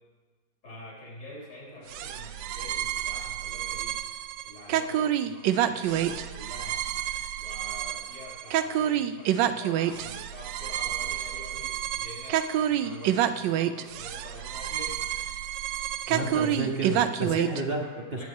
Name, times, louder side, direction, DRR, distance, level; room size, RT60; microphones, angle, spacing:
voice 1, 0.6-4.0 4.4-6.8 7.4-14.9 17.9-18.2, left 1 dB, 75° left, -6 dB, 5.4 m, -45 dB
sound 1, 1.9-17.6, right 11 dB, 80° right, 1.2 m, -28 dB
voice 2, 16.1-18.2, right 2 dB, 40° right, 0 dB, 0.9 m, -31 dB
19.0 x 9.0 x 3.5 m, 1.3 s
omnidirectional pair, 1.9 m